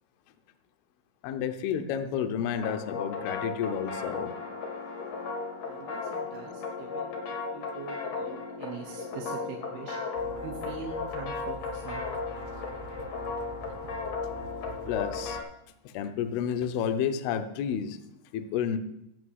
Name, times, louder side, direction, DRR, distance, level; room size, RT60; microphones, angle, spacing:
voice 1, 1.2-4.3 14.9-15.4 15.9-18.0 18.3-18.8, left 8 dB, 75° left, 8 dB, 2.4 m, -30 dB
sound 1, 2.5-15.4, left 4 dB, 55° left, 2.0 m, -35 dB
voice 2, 5.6-10.0 10.4-12.2, right 7 dB, 70° right, 0 dB, 2.6 m, -43 dB
sound 2, 10.2-15.4, right 4 dB, 90° right, 3.4 m, -46 dB
15.5 x 5.5 x 7.9 m, 0.84 s
omnidirectional pair, 5.5 m